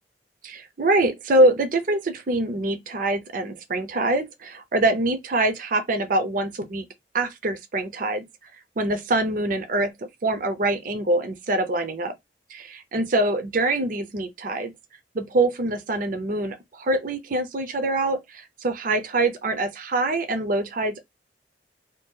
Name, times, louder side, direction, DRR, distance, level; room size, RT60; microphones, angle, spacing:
voice 1, 0.4-6.9 7.1-8.2 8.8-9.9 10.2-12.1 12.5-14.7 15.1-21.0, right 2 dB, 50° right, 0.5 m, -24 dB
2.7 x 2.3 x 3.5 m
head